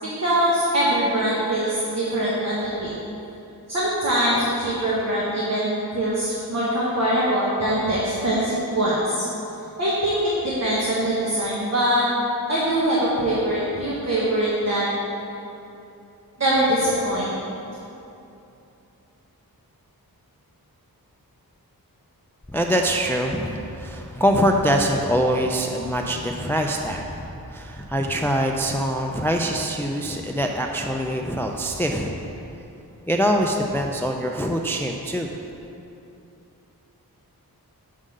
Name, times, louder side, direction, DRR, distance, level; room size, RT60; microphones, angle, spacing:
voice 1, 0.2-2.9 3.7-9.2 9.8-12.0 12.5-14.9 16.4-17.3, right 1 dB, 45° right, -8 dB, 1.2 m, -23 dB
voice 2, 22.5-32.3 33.1-35.3, equal, 5° left, 2 dB, 0.3 m, -24 dB
6.6 x 3.7 x 6.3 m, 2.8 s
wide cardioid pair, 105°, 37 cm